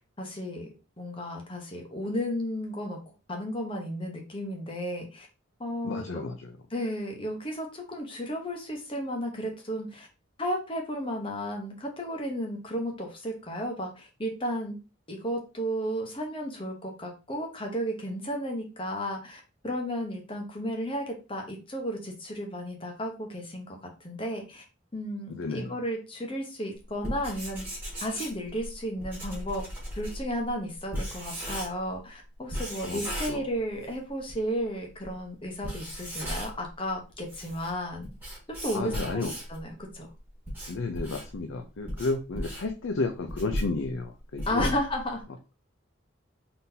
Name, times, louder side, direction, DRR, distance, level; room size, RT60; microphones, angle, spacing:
voice 1, 0.2-0.7 1.0-3.0 3.3-5.3 5.6-6.3 6.7-10.1 10.4-14.7 15.1-24.6 24.9-27.7 28.0-29.6 29.9-38.1 38.5-39.2 39.5-40.1 44.5-45.2, equal, 25° left, 2 dB, 1.0 m, -33 dB
voice 2, 5.8-6.6 25.3-25.7 32.8-33.0 33.3-33.5 38.7-39.3 40.7-44.7, left 3 dB, 75° left, 5 dB, 0.5 m, -32 dB
Writing, 26.9-32.0 32.5-34.0 34.3-34.4 35.0-35.1 35.5-36.7 37.1-39.6 40.2-45.2, equal, 10° right, 1.7 m, -36 dB
4.0 x 3.8 x 2.7 m, 0.31 s
head